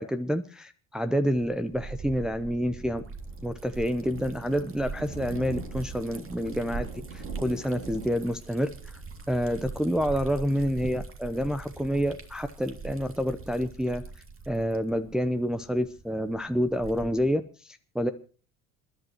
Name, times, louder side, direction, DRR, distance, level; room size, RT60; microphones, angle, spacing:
voice 1, 0.0-3.0 3.4-9.0 9.3-14.0 14.5-18.1, equal, ahead, 8 dB, 0.8 m, -28 dB
Liquid, 1.3-17.4, right 4 dB, 30° right, 2.3 m, -42 dB
Thunder, 2.7-11.9, right 4 dB, 80° right, 3.2 m, -44 dB
28.0 x 11.0 x 3.0 m, 0.38 s
hypercardioid pair, 70°, 42 cm